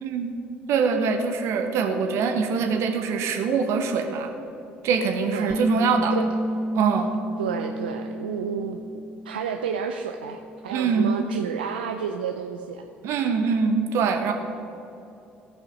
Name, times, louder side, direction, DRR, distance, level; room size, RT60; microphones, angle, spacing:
voice 1, 0.0-0.3 0.7-4.3 4.8-6.2 6.7-7.1 10.7-11.2 13.0-14.3, right 5 dB, 65° right, 5 dB, 1.1 m, -23 dB
Bass guitar, 5.5-9.8 10.1-11.7, equal, 15° right, 0.6 m, -31 dB
voice 2, 7.4-12.9, right 7 dB, 90° right, 5 dB, 0.4 m, -31 dB
14.5 x 5.6 x 5.4 m, 2.8 s
hypercardioid pair, 60°, 5 cm